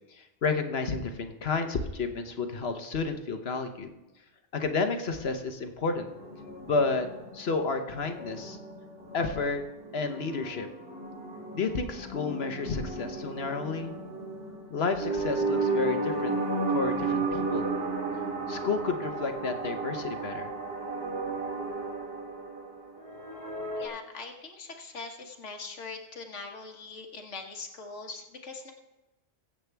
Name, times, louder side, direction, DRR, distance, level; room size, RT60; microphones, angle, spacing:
voice 1, 0.1-3.9 4.5-6.1 6.6-7.1 7.3-8.6 9.1-9.6 9.9-10.7 11.5-13.9 14.7-16.4 16.7-17.7 18.5-20.5, left 4 dB, 60° left, 7 dB, 1.2 m, -31 dB
sound 1, 6.1-23.9, right 3 dB, 55° right, 2.3 m, -33 dB
voice 2, 23.8-28.7, left 4 dB, 85° left, 3 dB, 1.7 m, -42 dB
23.0 x 7.8 x 3.4 m, 1.0 s
omnidirectional pair, 1.2 m